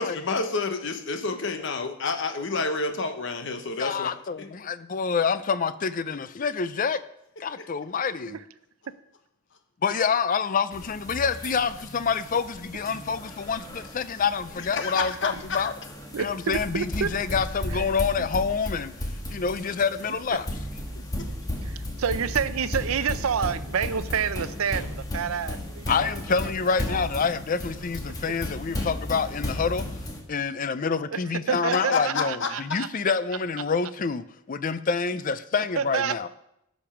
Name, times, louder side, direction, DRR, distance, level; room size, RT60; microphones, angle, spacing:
voice 1, 0.0-4.1 4.4-4.5 7.6-7.7 14.6-15.7 21.2-21.3 31.7-32.8, left 4 dB, 60° left, 1.0 m, -29 dB
voice 2, 3.8-7.0 7.4-8.4 9.8-15.7 16.2-18.9 19.3-20.5 25.9-29.8 30.3-36.3, left 5 dB, 40° left, 0.5 m, -27 dB
sound 1, 10.7-30.2, left 1 dB, 15° left, 1.5 m, -35 dB
voice 3, 16.1-17.1 17.7-17.9 18.2-18.3 20.3-20.4 21.6-26.2 26.6-27.1 31.1-31.2 31.5-32.9 35.8-36.3, right 7 dB, 85° right, 0.5 m, -29 dB
13.5 x 5.3 x 5.8 m
head